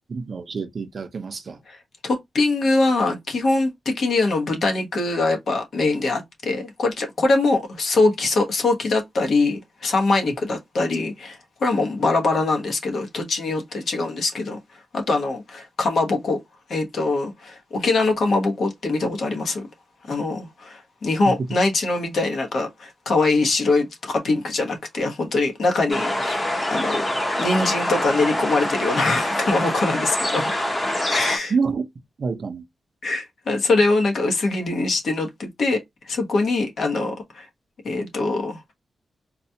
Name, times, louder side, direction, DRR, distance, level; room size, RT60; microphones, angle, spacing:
voice 1, 0.1-1.6 31.5-31.8 32.2-32.6, right 5 dB, 45° right, 0.5 m, -27 dB
voice 2, 2.0-14.6 14.9-16.4 16.7-19.6 20.1-27.0 27.4-30.5 31.1-31.5 33.0-35.8 36.0-37.5 37.8-38.7, left 3 dB, 60° left, 1.0 m, -23 dB
sound 1, 25.9-31.4, left 1 dB, 20° left, 0.8 m, -25 dB
4.1 x 2.2 x 2.7 m
wide cardioid pair, 175°, 0 cm